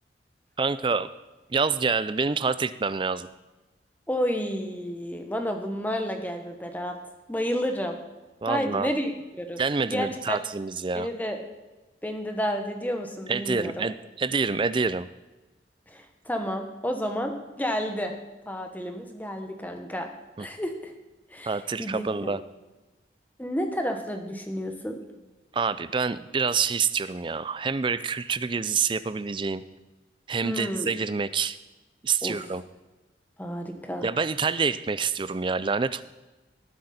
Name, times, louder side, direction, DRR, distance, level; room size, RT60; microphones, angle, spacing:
voice 1, 0.6-1.1 1.5-3.3 8.4-8.9 9.6-11.1 13.3-15.1 20.4-20.5 21.5-22.4 25.5-29.6 30.3-31.6 32.0-32.6 34.0-36.0, right 5 dB, 30° right, 14 dB, 0.4 m, -27 dB
voice 2, 4.1-7.0 7.3-8.0 8.5-9.1 9.4-9.6 9.9-10.4 10.9-11.4 12.0-13.9 15.9-18.1 18.4-20.1 20.4-20.9 21.3-22.4 23.4-25.0 30.4-30.9 32.2-32.4 33.4-34.1, equal, 10° left, 5 dB, 1.2 m, -31 dB
19.0 x 7.8 x 4.3 m, 1.1 s
head